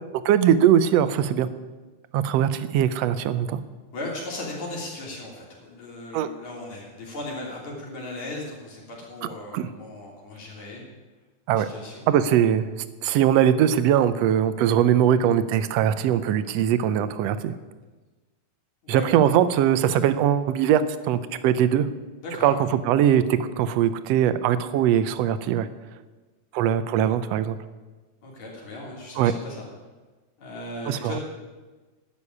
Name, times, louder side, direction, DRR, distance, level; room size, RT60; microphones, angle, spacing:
voice 1, 0.2-1.5 2.1-3.6 6.1-6.3 9.5-9.7 11.5-11.7 12.1-12.7 13.0-17.5 18.9-21.9 22.4-22.5 22.9-25.7 26.5-27.6 29.2-29.3 30.9-31.1, right 10 dB, 75° right, 13 dB, 1.5 m, -21 dB
voice 2, 3.9-10.8 11.5-12.1 18.8-19.1 22.2-22.6 28.2-29.6 30.4-31.2, left 2 dB, 65° left, -3 dB, 4.4 m, -37 dB
11.0 x 7.3 x 9.7 m, 1.3 s
omnidirectional pair, 3.5 m